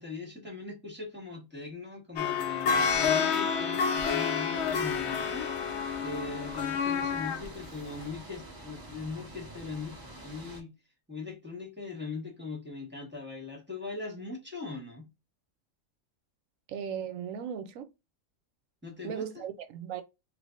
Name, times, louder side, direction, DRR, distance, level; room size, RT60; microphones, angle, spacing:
voice 1, 0.0-10.0 10.2-10.7 11.1-15.1 18.8-19.4, left 4 dB, 10° right, 1.1 m, -40 dB
sound 1, 2.2-7.5 8.0-8.1, left 6 dB, 65° left, 0.9 m, -29 dB
sound 2, 4.5-10.6, right 1 dB, 25° right, 0.5 m, -46 dB
voice 2, 16.7-17.9 19.0-20.0, right 8 dB, 85° right, 1.0 m, -37 dB
3.4 x 3.1 x 2.5 m
omnidirectional pair, 1.4 m